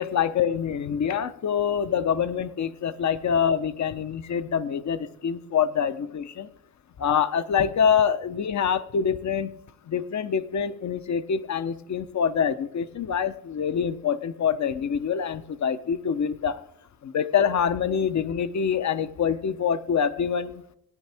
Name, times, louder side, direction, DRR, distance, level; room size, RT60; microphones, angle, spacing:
voice 1, 0.0-6.5 7.0-9.6 9.9-16.6 17.0-20.6, left 7 dB, 45° left, 13 dB, 0.9 m, -25 dB
17.5 x 9.4 x 3.5 m, 0.74 s
supercardioid pair, 70°, 39 cm